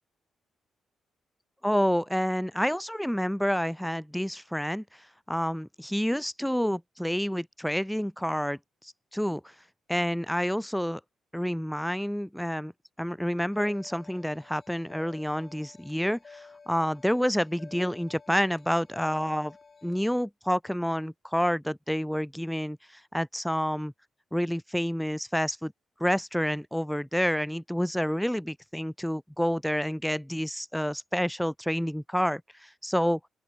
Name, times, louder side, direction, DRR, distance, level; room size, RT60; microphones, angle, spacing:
voice 1, 1.6-9.5 9.9-11.0 11.3-12.7 13.0-19.6 19.8-23.9 24.3-25.7 26.0-33.2, equal, ahead, 0.5 m, -29 dB
sound 1, 13.5-20.2, left 4 dB, 30° left, 5.7 m, -52 dB
open air
cardioid pair, 150°, 0 cm